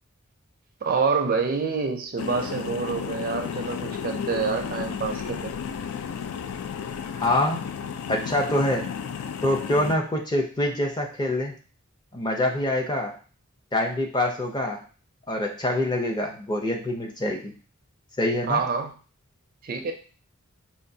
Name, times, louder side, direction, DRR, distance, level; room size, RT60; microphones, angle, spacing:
voice 1, 0.8-5.5 18.5-18.9 19.6-19.9, right 5 dB, 40° right, 5 dB, 0.4 m, -27 dB
sound 1, 2.2-10.0, left 7 dB, 80° left, 0.3 m, -33 dB
voice 2, 7.2-7.6 8.1-8.9 9.4-11.5 12.1-13.2 13.7-14.8 15.3-17.5 18.2-18.6, left 1 dB, 20° left, 2 dB, 0.5 m, -25 dB
4.4 x 2.3 x 2.7 m, 0.38 s
head